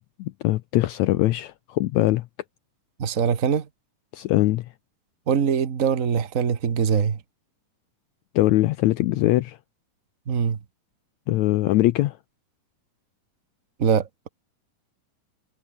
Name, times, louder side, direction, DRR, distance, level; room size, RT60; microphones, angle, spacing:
voice 1, 0.2-2.3 4.1-4.7 8.3-9.6 11.3-12.2, left 16 dB, 80° left, 1.7 m, -22 dB
voice 2, 3.0-3.7 5.3-7.2 10.3-10.6 13.8-14.1, right 7 dB, 65° right, 0.8 m, -22 dB
omnidirectional pair, 3.9 m